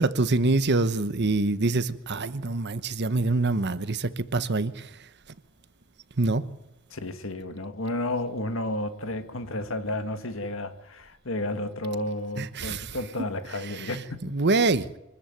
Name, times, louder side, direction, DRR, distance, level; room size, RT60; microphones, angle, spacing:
voice 1, 0.0-4.9 6.2-6.4 12.4-12.9 14.3-14.9, right 3 dB, 50° right, 1.1 m, -25 dB
voice 2, 6.9-14.3, left 1 dB, 65° left, 1.8 m, -32 dB
24.0 x 14.0 x 9.0 m
head